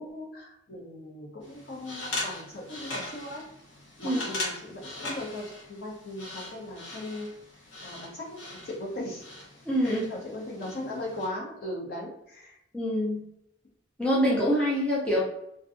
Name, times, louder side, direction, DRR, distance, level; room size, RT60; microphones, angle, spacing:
voice 1, 0.0-3.4 4.0-7.3 7.8-8.4 8.6-9.2 9.8-12.6, left 1 dB, 50° left, -3 dB, 0.8 m, -38 dB
sound 1, 1.4-11.3, left 2 dB, 80° left, 1.0 m, -40 dB
voice 2, 9.7-10.1 12.7-13.2 14.0-15.2, equal, 5° left, -6 dB, 0.4 m, -25 dB
2.6 x 2.2 x 2.5 m, 0.79 s
head